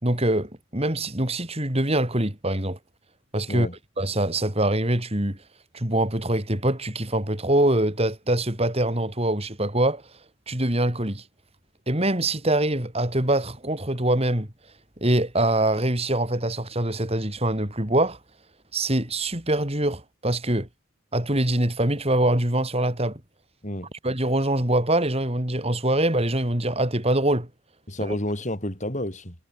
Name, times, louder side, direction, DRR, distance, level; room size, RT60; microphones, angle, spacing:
voice 1, 0.0-2.8 3.3-3.7 4.0-5.4 5.7-10.0 10.5-11.2 11.9-14.5 15.0-18.2 18.7-20.7 21.1-23.2 24.0-27.5 28.1-28.2, right 1 dB, 25° right, 3.4 m, -24 dB
voice 2, 27.9-29.4, left 1 dB, 35° left, 5.6 m, -30 dB
head